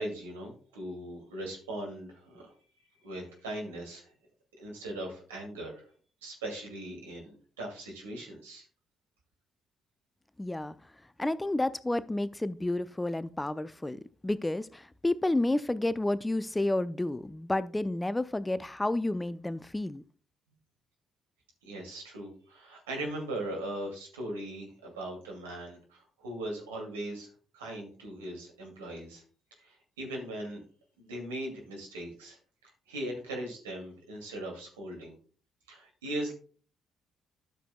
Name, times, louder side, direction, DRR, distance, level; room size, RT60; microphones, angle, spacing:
voice 1, 0.0-2.5 3.0-4.1 4.6-5.8 6.2-8.7 21.6-27.3 27.5-29.2 29.5-30.6 31.0-35.1 35.7-36.3, right 1 dB, 80° right, 2.4 m, -39 dB
voice 2, 10.4-10.7 11.2-20.0, left 2 dB, 15° left, 0.5 m, -30 dB
12.5 x 6.9 x 2.3 m
figure-of-eight pair, 45°, 0 cm